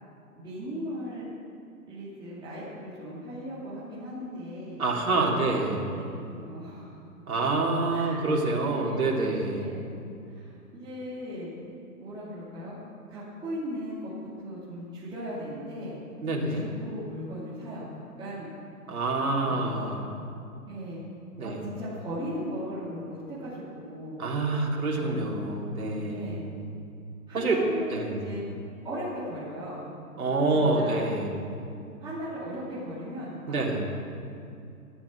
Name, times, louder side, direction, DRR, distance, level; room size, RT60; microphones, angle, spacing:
voice 1, 0.3-1.2 1.9-4.8 5.4-6.8 7.9-9.1 9.5-9.9 10.3-11.5 12.0-12.8 13.1-14.1 14.4-16.0 16.5-17.9 18.2-18.5 19.4-20.0 20.7-21.0 21.4-24.2 24.9-25.6 26.1-26.5 27.3-28.4 28.8-29.9 30.5-31.0 32.0-33.6, equal, 10° right, -12 dB, 2.9 m, -38 dB
voice 2, 4.8-5.8 7.3-9.6 16.2-16.7 18.9-20.1 21.4-21.6 24.2-26.4 27.3-27.6 27.9-28.2 30.2-31.3 33.5-33.8, right 2 dB, 60° right, -2 dB, 3.5 m, -27 dB
13.0 x 12.0 x 6.2 m, 2.6 s
hypercardioid pair, 145°, 47 cm